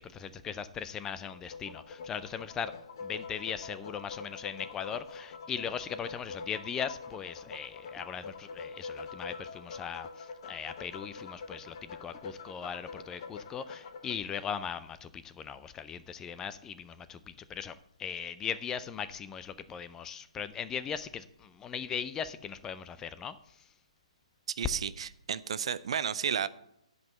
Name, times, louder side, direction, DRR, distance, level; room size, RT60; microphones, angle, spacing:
voice 1, 0.0-2.7 3.0-17.7 18.0-23.3, left 7 dB, 15° left, 13 dB, 0.4 m, -39 dB
sound 1, 1.3-14.2, left 5 dB, 45° left, 1.2 m, -45 dB
voice 2, 24.6-26.5, right 7 dB, 55° right, 16 dB, 0.5 m, -32 dB
10.5 x 5.4 x 6.6 m, 0.79 s
figure-of-eight pair, 135°, 4 cm